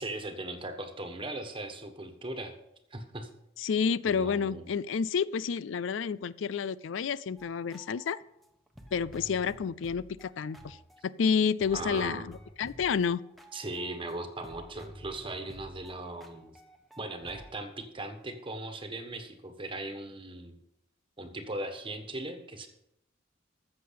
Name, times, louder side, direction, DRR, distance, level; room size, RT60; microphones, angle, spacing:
voice 1, 0.0-2.5 2.9-3.3 4.0-4.6 11.7-12.3 13.5-16.6 17.0-20.6 21.2-22.7, right 2 dB, 25° right, 7 dB, 1.4 m, -38 dB
voice 2, 3.6-8.2 8.9-10.8 11.0-13.2, left 6 dB, 70° left, 19 dB, 0.4 m, -30 dB
sound 1, 7.4-11.3 11.6-14.2 14.4-17.5, equal, ahead, 1.1 m, -51 dB
14.0 x 7.6 x 5.8 m, 0.82 s
head